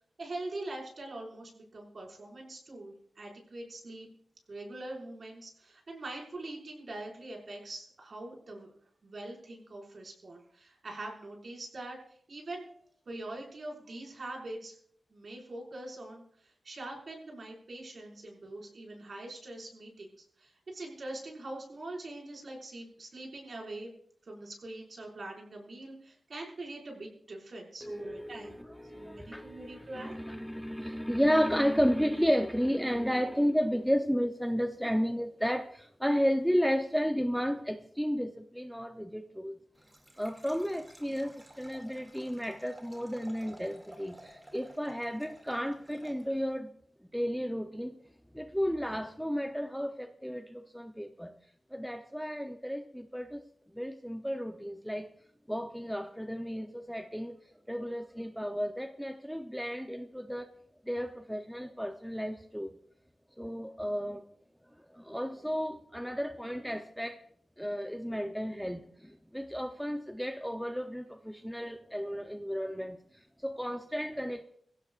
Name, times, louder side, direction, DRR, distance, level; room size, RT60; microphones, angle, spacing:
voice 1, 0.2-4.1 4.5-8.7 9.0-12.7 13.1-14.8 15.1-23.9 24.3-28.6 28.9-30.2, right 2 dB, 55° right, 5.4 m, -43 dB
voice 2, 27.8-39.6 40.2-46.7 47.1-47.9 48.3-51.3 51.7-53.4 53.7-55.1 55.5-57.3 57.7-60.5 60.9-62.7 63.4-64.2 64.9-67.2 67.6-73.0 73.4-74.4, equal, ahead, 0.7 m, -32 dB
Liquid, 39.7-46.6, right 1 dB, 20° right, 2.4 m, -54 dB
23.0 x 16.5 x 2.5 m
wide cardioid pair, 110°, 0 cm